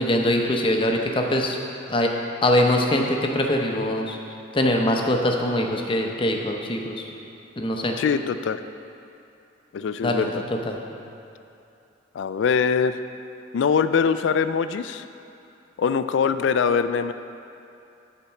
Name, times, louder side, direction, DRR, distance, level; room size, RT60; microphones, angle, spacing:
voice 1, 0.0-1.6 1.9-2.1 2.4-4.2 4.5-7.0 7.6-7.9 10.0-10.3 10.6-10.8, left 1 dB, 25° left, 2 dB, 0.7 m, -22 dB
voice 2, 8.0-8.6 9.7-10.4 12.1-13.0 13.5-15.1 15.8-17.1, left 6 dB, 65° left, 11 dB, 0.3 m, -23 dB
8.5 x 4.4 x 7.0 m, 2.7 s
head